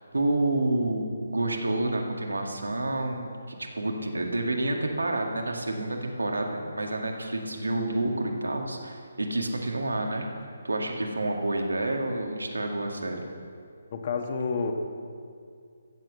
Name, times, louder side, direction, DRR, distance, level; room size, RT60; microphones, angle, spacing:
voice 1, 0.1-10.3 10.6-13.2, right 2 dB, 85° right, 2 dB, 1.9 m, -29 dB
voice 2, 13.9-14.7, left 5 dB, 45° left, 4 dB, 1.6 m, -29 dB
14.5 x 8.0 x 7.3 m, 2.3 s
figure-of-eight pair, 150°, 0 cm